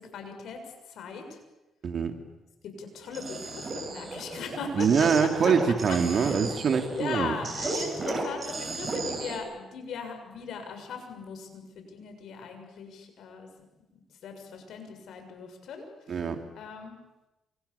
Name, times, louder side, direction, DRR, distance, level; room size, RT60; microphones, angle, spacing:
voice 1, 0.0-1.4 2.6-4.9 5.2-5.3 5.9-6.4 6.7-13.5 14.2-16.3 16.6-17.0, left 5 dB, 75° left, 5 dB, 7.1 m, -39 dB
voice 2, 1.8-2.2 4.7-7.4 16.1-16.4, right 6 dB, 55° right, 6 dB, 3.1 m, -24 dB
sound 1, 3.1-9.4, right 2 dB, 30° right, 7.3 m, -34 dB
29.5 x 27.0 x 7.2 m, 1.0 s
cardioid pair, 90°, 0 cm